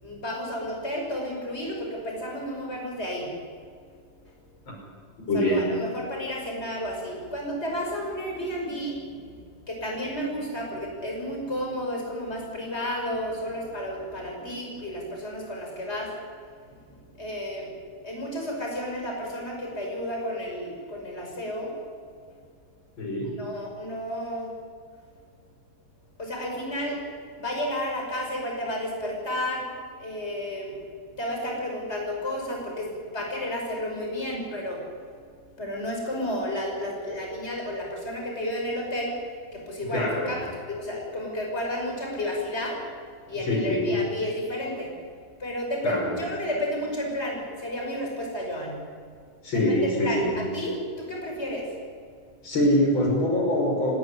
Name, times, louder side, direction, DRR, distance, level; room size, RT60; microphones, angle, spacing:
voice 1, 0.0-3.3 5.3-9.3 9.7-16.1 17.1-17.7 18.0-21.7 23.4-24.5 26.2-27.0 27.4-29.7 30.0-30.8 31.2-34.8 35.6-39.2 39.5-42.8 43.3-44.9 45.4-48.8 49.5-51.7, left 1 dB, 30° left, 0 dB, 6.1 m, -32 dB
voice 2, 5.3-5.7 23.0-23.5 39.9-40.4 43.4-44.0 45.8-46.2 49.4-50.5 52.4-54.0, left 1 dB, 80° left, 0 dB, 6.3 m, -24 dB
29.5 x 13.5 x 9.8 m, 2.1 s
omnidirectional pair, 2.1 m